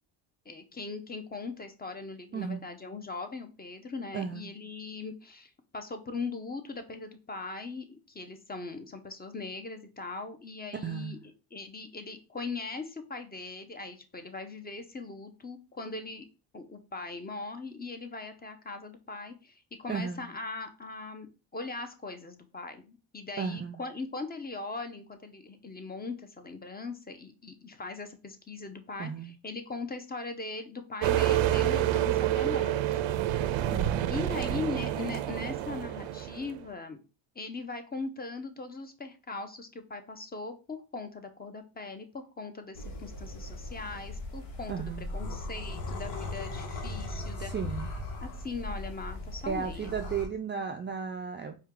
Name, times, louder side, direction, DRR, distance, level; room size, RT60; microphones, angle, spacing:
voice 1, 0.5-16.2 16.5-33.0 34.1-37.0 37.4-47.5 48.2-50.0, left 3 dB, 20° left, 7 dB, 0.7 m, -40 dB
voice 2, 2.3-2.6 4.1-4.5 10.8-11.1 19.9-20.2 23.4-23.8 29.0-29.3 33.7-34.3 44.7-45.2 47.4-47.9 49.5-51.6, right 6 dB, 25° right, 5 dB, 0.3 m, -34 dB
sound 1, 31.0-36.6, right 12 dB, 75° right, 0.6 m, -28 dB
sound 2, 42.8-50.3, left 2 dB, 70° left, 1.4 m, -38 dB
4.5 x 2.4 x 3.6 m, 0.33 s
supercardioid pair, 75°, 47 cm